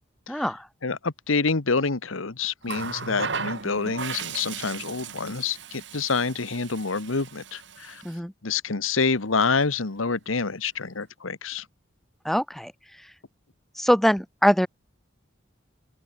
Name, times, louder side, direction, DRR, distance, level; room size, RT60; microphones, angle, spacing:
voice 1, 0.3-0.7 8.0-8.3 12.2-12.7 13.0-13.1 13.7-14.7, equal, ahead, 0.6 m, -23 dB
voice 2, 0.8-8.0 8.4-11.6, left 4 dB, 90° left, 1.3 m, -27 dB
Water tap faucet, 2.6-8.2 9.4-9.6, right 5 dB, 60° right, 1.9 m, -36 dB
open air
head